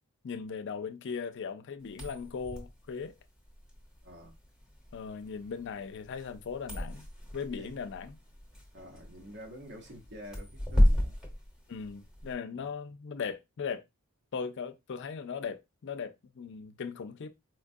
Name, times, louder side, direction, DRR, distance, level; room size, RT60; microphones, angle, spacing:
voice 1, 0.2-3.1 4.9-7.1 7.3-8.2 11.7-13.8 14.3-17.3, left 6 dB, 55° left, 0.4 m, -38 dB
sound 1, 1.8-12.3, equal, ahead, 1.0 m, -33 dB
voice 2, 4.0-4.3 7.6-7.8 8.7-11.2 12.5-12.7, equal, 55° right, 1.0 m, -48 dB
4.4 x 2.3 x 2.6 m
head